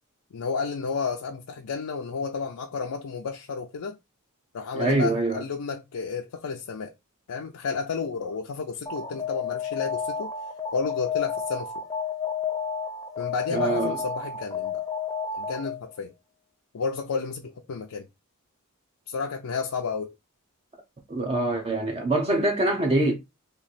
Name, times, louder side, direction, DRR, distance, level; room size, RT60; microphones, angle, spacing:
voice 1, 0.3-4.0 4.5-6.9 7.3-10.3 10.7-11.7 13.2-14.9 15.3-16.1 16.7-18.1 19.1-20.1, left 5 dB, 85° left, 0.5 m, -31 dB
voice 2, 4.7-5.4 13.5-14.0 21.1-23.1, right 2 dB, 25° right, 0.6 m, -24 dB
Alarm, 8.9-15.9, left 6 dB, 15° left, 0.6 m, -31 dB
3.1 x 2.5 x 3.9 m
head